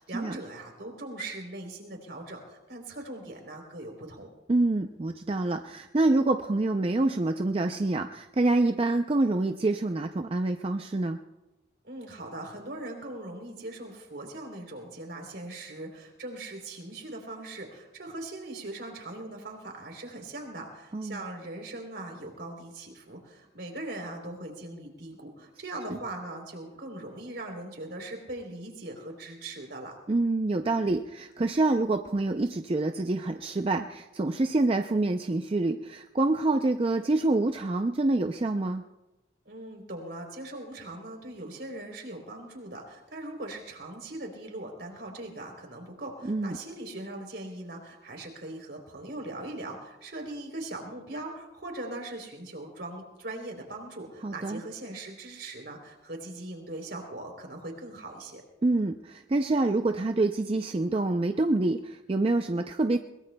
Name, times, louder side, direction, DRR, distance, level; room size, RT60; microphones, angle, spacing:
voice 1, 0.0-4.3 11.8-29.9 39.5-58.4, right 2 dB, 70° right, 2 dB, 3.4 m, -40 dB
voice 2, 4.5-11.2 20.9-21.2 25.9-26.0 30.1-38.8 46.2-46.6 54.2-54.6 58.6-63.0, right 2 dB, 30° right, 6 dB, 0.4 m, -26 dB
22.0 x 21.0 x 2.2 m, 1.0 s
head